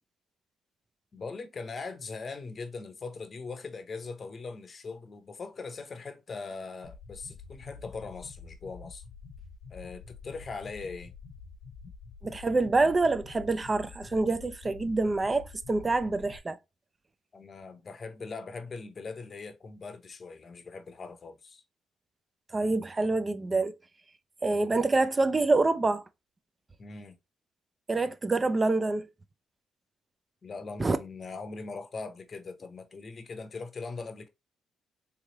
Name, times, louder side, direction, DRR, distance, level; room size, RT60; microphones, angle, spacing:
voice 1, 1.1-9.0 9.7-11.1 17.3-21.6 26.8-27.1 30.4-34.3, left 4 dB, 40° left, 0.7 m, -41 dB
sound 1, 6.8-16.4, left 5 dB, 70° left, 0.9 m, -48 dB
voice 2, 12.2-16.6 22.5-23.7 24.4-26.0 27.9-29.1 30.8-31.0, right 3 dB, 25° right, 0.4 m, -26 dB
3.5 x 3.2 x 2.8 m
cardioid pair, 90°, 0 cm